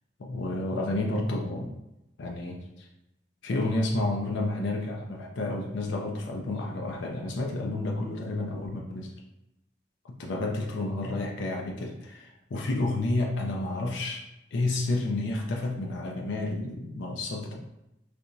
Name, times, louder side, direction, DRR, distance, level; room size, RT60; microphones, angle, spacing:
voice 1, 0.2-1.7 2.2-2.9 3.4-9.1 10.1-14.2 14.5-17.5, left 2 dB, 80° left, 0 dB, 0.4 m, -30 dB
3.4 x 2.8 x 2.6 m, 0.90 s
head